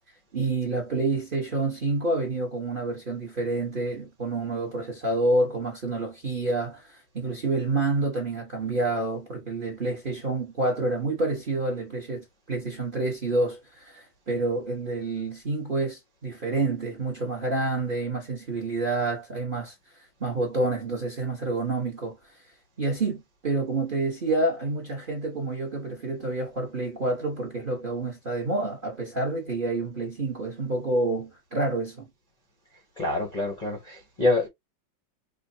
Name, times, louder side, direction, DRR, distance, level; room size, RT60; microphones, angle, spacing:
voice 1, 0.3-19.7 20.2-22.3 22.8-32.1, right 2 dB, 40° right, 0.8 m, -28 dB
voice 2, 33.0-34.5, left 2 dB, 40° left, 0.5 m, -26 dB
5.0 x 2.2 x 2.6 m
omnidirectional pair, 2.2 m